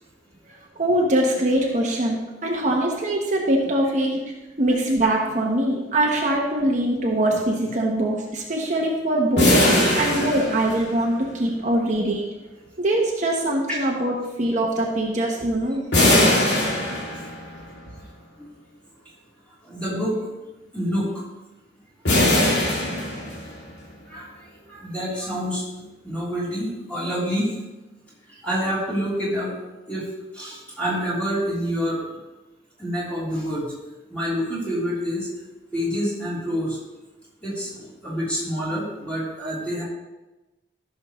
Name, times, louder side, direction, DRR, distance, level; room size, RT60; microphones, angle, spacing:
voice 1, 0.8-2.2 2.4-4.2 4.6-12.2 12.8-15.8, right 1 dB, 45° right, -1 dB, 1.1 m, -23 dB
sound 1, 9.4-11.2 15.9-17.6 22.1-23.7, left 1 dB, 85° left, 2.4 m, -20 dB
voice 2, 9.6-10.0 13.7-13.8 18.4-18.5 19.6-20.2 20.7-21.1 24.1-24.3 24.7-25.6 26.0-27.5 28.4-29.5 29.9-30.0 30.3-32.0 32.8-33.7 34.1-35.3 35.7-36.8 37.4-39.8, equal, 10° left, -8 dB, 3.4 m, -27 dB
14.5 x 6.4 x 3.1 m, 1.1 s
head